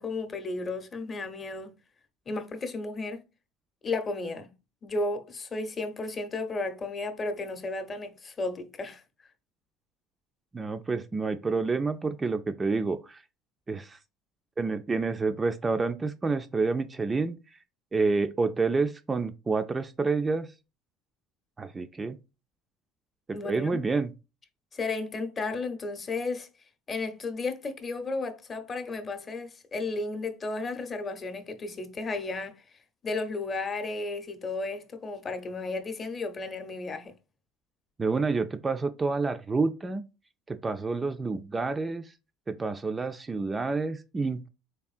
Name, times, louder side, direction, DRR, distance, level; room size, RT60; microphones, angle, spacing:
voice 1, 0.0-1.7 2.3-3.2 3.8-4.5 4.8-9.0 23.3-23.8 24.7-26.5 26.9-32.6 33.0-37.1, left 3 dB, 30° left, 0.7 m, -33 dB
voice 2, 10.5-13.2 13.7-14.0 14.6-17.3 17.9-20.5 21.6-22.2 23.3-24.1 38.0-40.1 40.5-42.1 42.5-44.5, right 4 dB, 20° right, 0.3 m, -28 dB
3.5 x 3.4 x 2.4 m
supercardioid pair, 100°, 0 cm